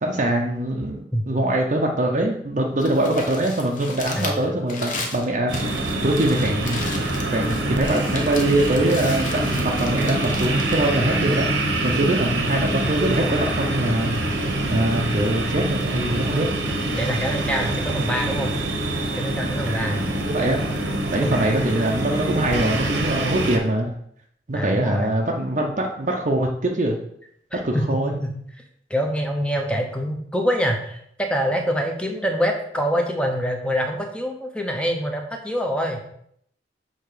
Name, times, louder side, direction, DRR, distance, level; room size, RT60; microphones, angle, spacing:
voice 1, 0.0-16.5 19.9-23.9 24.5-27.0 27.5-28.1, right 1 dB, 40° right, 0 dB, 0.7 m, -23 dB
Crumpling crinkling, 2.6-11.8, left 3 dB, 45° left, 1.1 m, -36 dB
voice 2, 4.2-4.5 16.9-18.5 19.2-20.0 20.7-20.8 21.2-21.4 24.5-25.1 27.5-28.3 28.9-36.0, equal, 5° left, 3 dB, 0.8 m, -25 dB
sound 1, 5.5-23.6, right 2 dB, 80° right, 1.2 m, -25 dB
6.6 x 3.6 x 5.0 m, 0.69 s
head